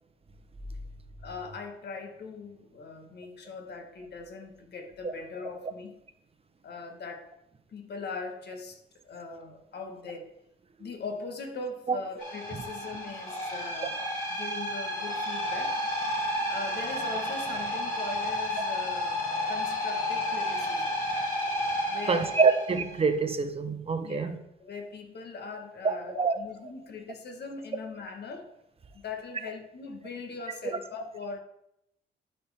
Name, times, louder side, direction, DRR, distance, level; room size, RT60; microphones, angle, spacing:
voice 1, 1.2-6.0 6.6-7.4 7.7-10.3 10.8-14.0 14.3-15.8 16.5-19.2 19.5-21.0 21.9-22.4 24.0-28.5 28.9-31.4, left 4 dB, 55° left, 1.4 m, -40 dB
sound 1, 12.2-23.0, left 1 dB, 40° left, 3.1 m, -31 dB
voice 2, 22.1-24.4 25.8-26.4, right 4 dB, 30° right, 0.9 m, -26 dB
11.5 x 4.4 x 3.5 m
cardioid pair, 90°, 20 cm